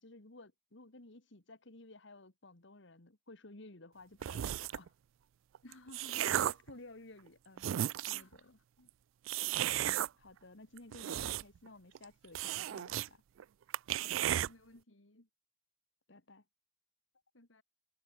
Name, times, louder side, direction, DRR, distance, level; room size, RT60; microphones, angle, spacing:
voice 1, 0.0-4.9 6.2-7.7 8.1-8.6 9.8-13.2 16.1-16.4, left 2 dB, 65° left, 2.2 m, -55 dB
sound 1, 4.2-4.9 5.5-6.7 7.3-7.4 7.6-8.3 9.3-10.1 10.8-11.7 11.9-12.0 12.3-13.1 13.4-13.5 13.7-14.5, right 12 dB, 85° right, 0.3 m, -34 dB
voice 2, 5.6-6.3 8.1-8.5 8.8-8.9 9.4-9.5 14.0-15.3 17.3-17.6, left 1 dB, 85° left, 3.1 m, -57 dB
head